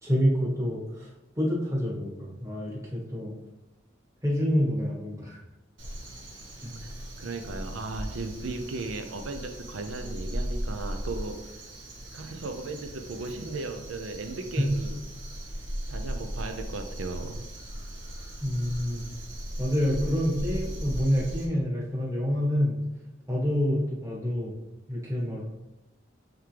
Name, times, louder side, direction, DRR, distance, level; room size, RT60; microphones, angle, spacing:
voice 1, 0.0-1.1 1.4-3.3 4.2-5.4 6.6-6.7 14.6-14.8 18.4-19.0 19.6-22.8 23.3-24.5 24.9-25.4, equal, 15° right, -4 dB, 1.4 m, -27 dB
Crow, 5.8-21.4, equal, 65° right, 1.5 m, -37 dB
voice 2, 6.8-11.6 12.1-15.0 15.9-17.5, right 3 dB, 85° right, 7 dB, 0.6 m, -36 dB
9.0 x 3.7 x 3.3 m, 1.0 s
head